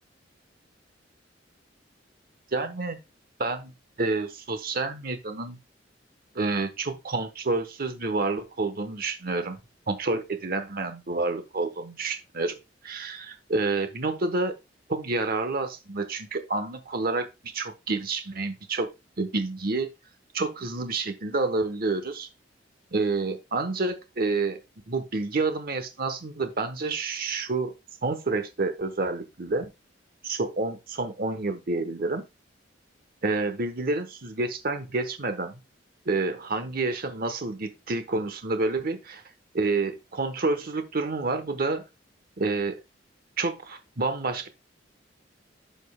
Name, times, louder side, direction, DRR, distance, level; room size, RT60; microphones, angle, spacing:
voice 1, 2.5-3.0 3.4-3.7 4.0-5.6 6.3-9.6 9.9-12.6 12.8-14.5 14.9-18.9 19.2-19.9 20.3-22.3 22.9-24.6 24.9-27.7 28.0-29.7 30.2-32.2 33.2-35.6 36.1-39.2 39.5-41.8 42.4-42.8 43.4-44.5, right 3 dB, 50° right, 8 dB, 1.1 m, -29 dB
11.0 x 5.3 x 2.2 m, 0.24 s
head